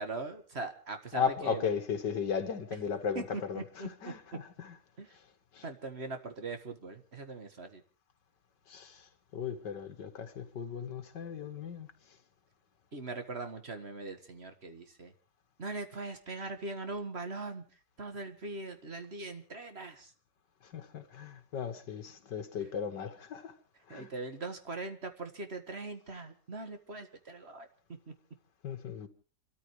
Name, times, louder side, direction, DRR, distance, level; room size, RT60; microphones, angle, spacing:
voice 1, 0.0-1.6 3.2-3.9 5.0-5.1 5.6-7.8 12.9-15.1 15.6-20.1 22.6-22.7 23.9-27.7 28.1-28.2, right 3 dB, 40° right, 1.8 m, -41 dB
voice 2, 1.1-4.8 5.5-5.6 8.7-12.2 20.6-23.5 23.9-24.1 28.6-29.1, left 6 dB, 80° left, 2.3 m, -36 dB
29.5 x 13.5 x 3.2 m
omnidirectional pair, 1.9 m